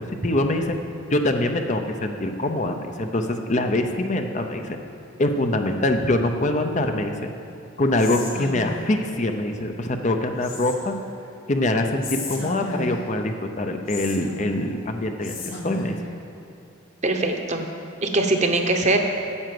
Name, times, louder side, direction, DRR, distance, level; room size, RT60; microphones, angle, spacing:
voice 1, 0.2-0.7 1.1-4.8 5.2-7.1 7.8-10.9 11.5-15.3 15.6-16.0, left 1 dB, 35° left, 5 dB, 0.6 m, -24 dB
Whispering, 8.0-9.1 10.4-11.1 12.0-13.2 13.9-14.8 15.2-16.1, left 2 dB, 80° left, 1.7 m, -34 dB
voice 2, 17.0-17.6 18.0-19.0, right 2 dB, 35° right, 4 dB, 0.9 m, -21 dB
9.8 x 7.8 x 7.7 m, 2.9 s
head